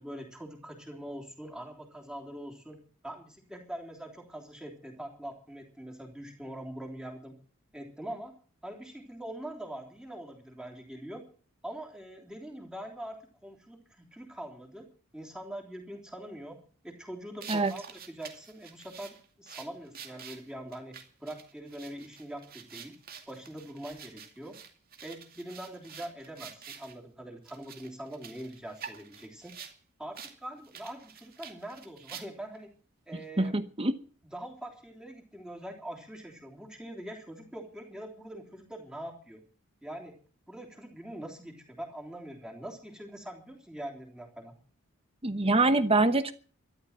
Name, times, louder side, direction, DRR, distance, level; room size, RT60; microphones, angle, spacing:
voice 1, 0.0-7.4 7.7-8.4 8.6-11.3 11.6-14.9 15.1-16.6 16.8-23.0 23.3-24.6 25.0-29.6 30.0-32.7 33.1-33.6 34.2-39.4 39.8-40.2 40.5-44.5, right 1 dB, 5° right, 1 dB, 3.5 m, -43 dB
sound 1, 17.4-26.9 27.4-29.8 30.1-30.3 30.6-32.6, right 7 dB, 40° right, 2.4 m, -48 dB
voice 2, 33.4-33.9 45.2-46.3, right 2 dB, 25° right, 11 dB, 1.0 m, -24 dB
13.5 x 12.0 x 7.3 m, 0.42 s
head